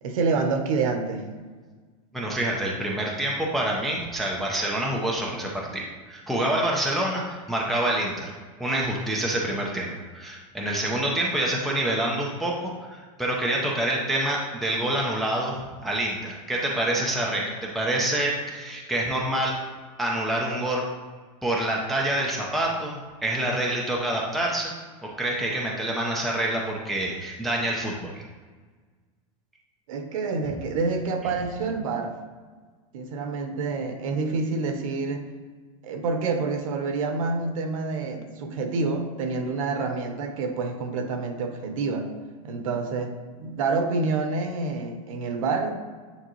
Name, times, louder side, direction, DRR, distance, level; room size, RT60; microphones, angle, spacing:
voice 1, 0.0-1.3 29.9-32.2 32.9-35.2 35.8-42.1 42.4-43.1 43.4-45.7, right 4 dB, 70° right, 6 dB, 1.0 m, -27 dB
voice 2, 2.1-8.3 8.6-15.6 15.8-19.5 20.0-20.8 21.4-24.7 25.0-28.2, right 1 dB, ahead, -3 dB, 0.4 m, -27 dB
8.9 x 3.7 x 3.0 m, 1.4 s
supercardioid pair, 175°, 18 cm